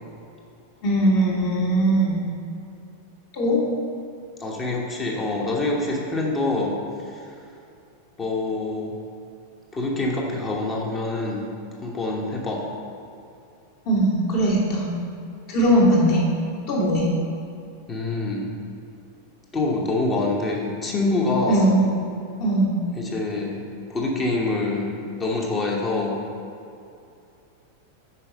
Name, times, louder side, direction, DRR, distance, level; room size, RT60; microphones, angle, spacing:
voice 1, 0.8-2.2 3.3-3.6 13.8-14.9 15.5-16.2 16.7-17.1 21.5-21.8 22.4-22.7, right 1 dB, 45° left, -4 dB, 1.6 m, -20 dB
voice 2, 4.4-6.7 7.0-7.3 8.2-9.0 9.7-11.4 11.8-12.6 17.9-18.5 19.5-21.7 23.0-23.6 23.9-24.9 25.2-26.2, left 2 dB, 20° left, -2 dB, 1.0 m, -25 dB
5.7 x 4.8 x 5.1 m, 2.6 s
figure-of-eight pair, 90°, 0 cm